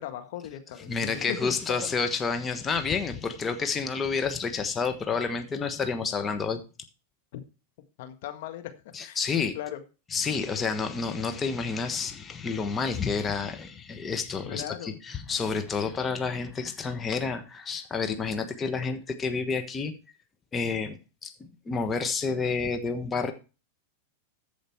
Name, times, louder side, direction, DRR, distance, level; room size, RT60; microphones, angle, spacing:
voice 1, 0.0-1.8 7.3-7.4 8.0-8.7 9.0-9.2 9.5-9.8 14.4-14.9, left 11 dB, 60° left, 7 dB, 1.6 m, -38 dB
voice 2, 0.9-6.6 8.9-9.6 10.1-19.9 20.5-23.3, left 5 dB, 20° left, 7 dB, 1.3 m, -29 dB
14.0 x 5.1 x 4.6 m, 0.32 s
hypercardioid pair, 105°, 0 cm